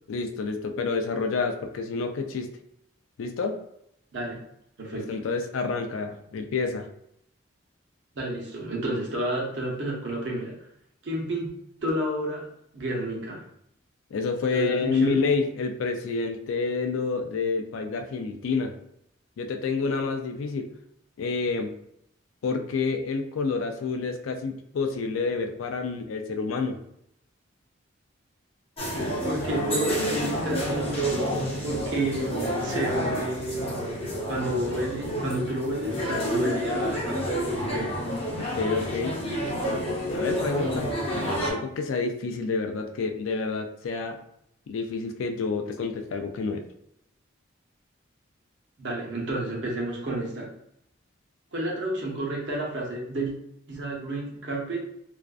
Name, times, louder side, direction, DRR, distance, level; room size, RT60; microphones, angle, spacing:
voice 1, 0.1-2.5 3.2-3.6 4.9-6.9 14.1-18.7 19.4-20.7 21.2-21.7 22.4-26.8 38.4-39.2 40.1-41.0 41.5-44.2 44.7-46.6, left 4 dB, 80° left, 6 dB, 0.3 m, -28 dB
voice 2, 4.8-5.1 8.2-10.6 11.0-11.5 11.8-12.5 12.7-13.5 14.5-15.2 29.2-31.3 31.6-33.9 34.3-37.2 37.7-38.0 48.8-50.5 51.5-53.3 53.7-54.8, right 1 dB, 65° right, -2 dB, 0.7 m, -30 dB
sound 1, 28.8-41.5, equal, 30° left, 0.6 m, -29 dB
2.5 x 2.1 x 2.3 m, 0.76 s
head